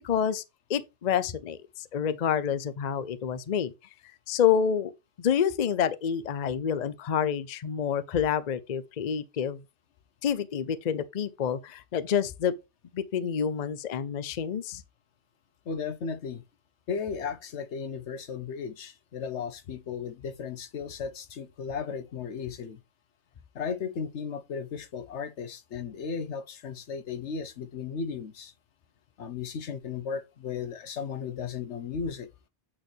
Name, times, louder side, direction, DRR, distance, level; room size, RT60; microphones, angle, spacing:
voice 1, 0.0-0.4 0.7-3.7 4.3-4.9 5.2-9.6 10.2-12.5 12.9-14.8, left 8 dB, 45° left, 0.6 m, -28 dB
voice 2, 15.7-16.4 16.9-22.8 23.5-28.5 29.2-32.3, left 6 dB, 75° left, 1.1 m, -35 dB
8.7 x 4.2 x 3.3 m
omnidirectional pair, 1.2 m